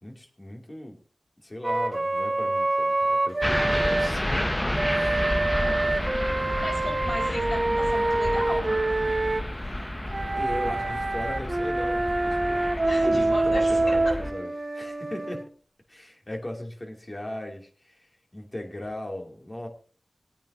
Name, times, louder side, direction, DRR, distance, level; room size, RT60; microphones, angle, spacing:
voice 1, 0.0-1.0 1.4-4.5 4.9-5.4 10.4-12.7 13.0-15.5 15.9-19.7, left 1 dB, 30° left, 2 dB, 2.8 m, -38 dB
Wind instrument woodwind instrument, 1.6-4.1 4.7-9.5 10.1-15.4, right 2 dB, 45° right, 1.7 m, -26 dB
sound 1, 3.4-14.3, left 1 dB, 15° left, 0.8 m, -30 dB
voice 2, 5.1-5.8 6.6-8.7 12.8-14.2, left 1 dB, 70° left, 0 dB, 5.3 m, -35 dB
22.0 x 8.9 x 2.8 m, 0.39 s
cardioid pair, 50°, 0 cm